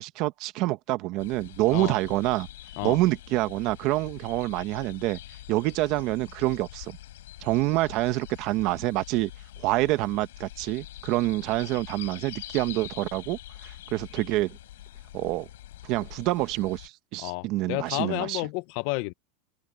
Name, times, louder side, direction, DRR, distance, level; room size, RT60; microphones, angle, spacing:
voice 1, 0.0-2.5 2.8-5.2 5.5-7.0 7.4-9.3 9.6-14.6 15.1-15.5 15.8-18.4, right 18 dB, 45° right, 1.1 m, -27 dB
sound 1, 1.2-16.9, left 14 dB, 90° left, 5.2 m, -45 dB
voice 2, 17.2-19.1, left 23 dB, 55° left, 0.7 m, -31 dB
open air
supercardioid pair, 155°, 0 cm